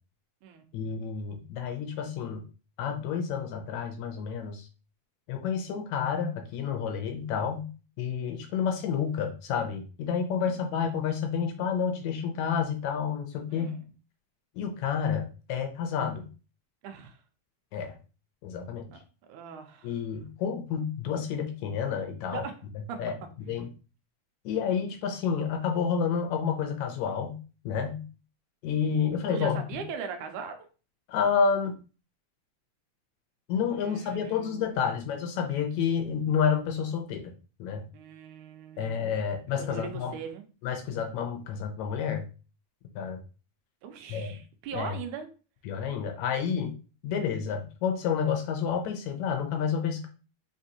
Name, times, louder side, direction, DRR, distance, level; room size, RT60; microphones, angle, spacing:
voice 1, 0.7-2.4 2.8-4.7 5.3-7.7 8.0-13.8 14.6-16.3 17.7-18.0 18.4-18.9 19.8-22.4 23.0-23.1 23.5-23.7 24.5-27.4 27.7-28.1 28.6-29.8 31.1-31.8 33.5-37.3 37.6-37.8 38.8-40.1 40.6-42.3 43.0-43.2 44.1-44.4 44.7-44.9 45.7-46.7 47.0-50.1, left 7 dB, 75° left, 5 dB, 1.9 m, -29 dB
voice 2, 16.8-17.2 18.9-19.0 19.3-20.0 22.3-22.6 22.9-23.1 29.3-30.7 33.7-34.8 37.9-39.2 39.6-40.4 43.8-45.3, right 6 dB, 85° right, 6 dB, 2.2 m, -40 dB
5.2 x 3.4 x 2.8 m, 0.34 s
omnidirectional pair, 3.5 m